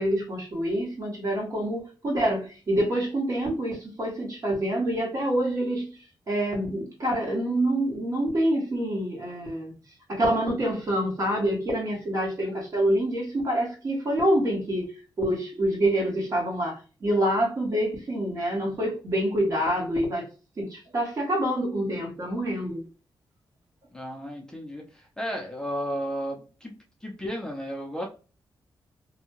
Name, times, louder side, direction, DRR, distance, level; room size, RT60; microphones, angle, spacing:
voice 1, 0.0-5.9 6.3-9.7 10.1-14.9 15.2-20.3 20.6-22.8, right 1 dB, 45° right, 1.3 m, -26 dB
voice 2, 23.9-26.7 27.0-28.1, equal, 10° left, 0.5 m, -33 dB
2.6 x 2.3 x 2.9 m
wide cardioid pair, 130°, 8 cm